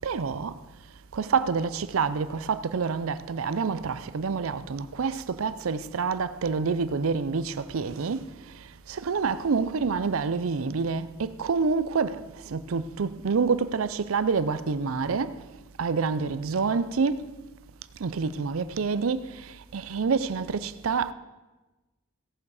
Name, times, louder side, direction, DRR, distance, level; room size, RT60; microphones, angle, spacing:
voice 1, 0.0-0.6 1.1-8.3 8.9-15.4 15.8-17.3 18.0-19.4 19.7-21.1, right 5 dB, 85° right, 0.5 m, -27 dB
17.0 x 7.1 x 4.8 m
head